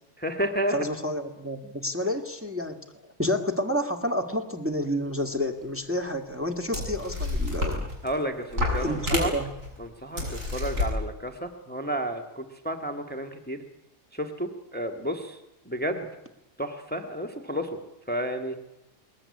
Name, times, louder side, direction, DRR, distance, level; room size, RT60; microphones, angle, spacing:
voice 1, 0.2-0.8 8.0-9.3 9.8-13.6 14.1-15.4 15.7-16.1 16.6-17.8 18.1-18.6, right 1 dB, 5° left, 5 dB, 1.8 m, -31 dB
voice 2, 0.7-2.8 3.2-7.9 8.8-9.5, left 1 dB, 10° right, 4 dB, 1.9 m, -29 dB
sound 1, 5.6-5.7 6.4-6.5 6.7-8.2 8.5-9.7 10.2-10.9, left 2 dB, 75° right, 7.3 m, -29 dB
21.5 x 20.5 x 9.7 m, 0.88 s
omnidirectional pair, 1.4 m